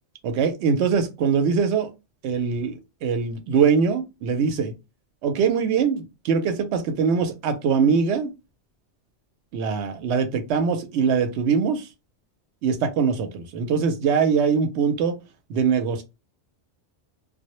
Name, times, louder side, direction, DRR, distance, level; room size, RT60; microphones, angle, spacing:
voice 1, 0.2-1.9 2.2-4.7 5.2-8.3 9.5-11.9 12.6-15.2 15.5-16.0, right 6 dB, 70° right, 0.8 m, -22 dB
2.1 x 2.0 x 2.9 m
omnidirectional pair, 1.2 m